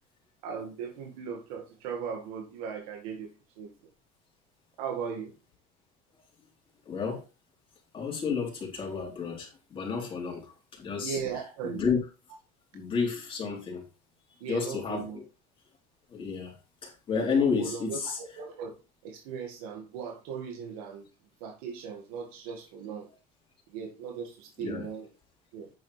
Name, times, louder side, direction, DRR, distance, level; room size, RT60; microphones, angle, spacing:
voice 1, 0.4-3.7 4.8-5.3 11.0-11.8 14.4-15.2 17.2-18.8 19.0-21.1 21.4-23.1 23.7-25.1 25.5-25.7, right 6 dB, 85° right, 1.8 m, -38 dB
voice 2, 6.9-7.2 7.9-11.2 11.6-12.0 12.7-13.8 14.5-15.2 16.1-16.6 16.8-18.2 24.6-24.9, left 5 dB, 30° left, 3.8 m, -31 dB
9.0 x 7.1 x 3.3 m
cardioid pair, 125°, 18 cm